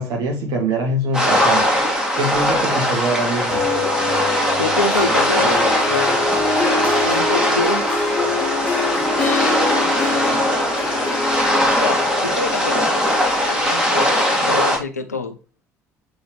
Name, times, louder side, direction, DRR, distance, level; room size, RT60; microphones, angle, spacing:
voice 1, 0.0-1.7 2.1-3.6, right 1 dB, 55° right, 2 dB, 2.1 m, -23 dB
sound 1, 1.1-14.8, equal, 10° right, 2.1 m, -20 dB
sound 2, 3.5-8.5 9.3-9.4 9.7-9.8, left 5 dB, 35° left, 1.8 m, -30 dB
voice 2, 4.6-6.3 6.9-7.8 11.7-13.0 13.5-15.4, left 3 dB, 85° left, 8 dB, 0.6 m, -26 dB
Harp, 4.7-13.6, left 3 dB, 15° left, 1.8 m, -25 dB
7.8 x 3.9 x 3.1 m, 0.33 s
figure-of-eight pair, 55°, 8 cm